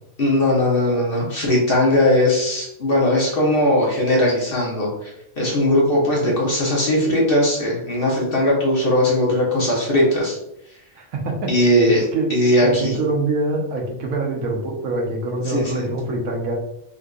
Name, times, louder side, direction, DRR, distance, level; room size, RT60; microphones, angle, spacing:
voice 1, 0.2-5.1 5.4-10.4 10.7-10.8 11.5-12.9 15.4-15.9, left 1 dB, 45° left, -4 dB, 0.9 m, -19 dB
voice 2, 10.9-11.5 11.9-12.3 12.6-16.5, right 2 dB, 75° right, 0 dB, 1.1 m, -24 dB
3.7 x 2.5 x 2.3 m, 0.79 s
omnidirectional pair, 1.5 m